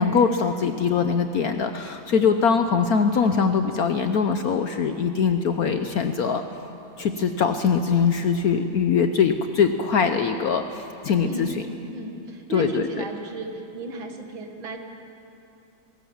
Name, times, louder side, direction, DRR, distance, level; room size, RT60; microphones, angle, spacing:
voice 1, 0.0-6.4 7.0-11.5 12.5-13.0, left 6 dB, 65° left, 8 dB, 1.0 m, -22 dB
voice 2, 11.2-14.8, right 2 dB, 75° right, 4 dB, 2.5 m, -34 dB
21.5 x 18.0 x 7.2 m, 2.8 s
omnidirectional pair, 2.2 m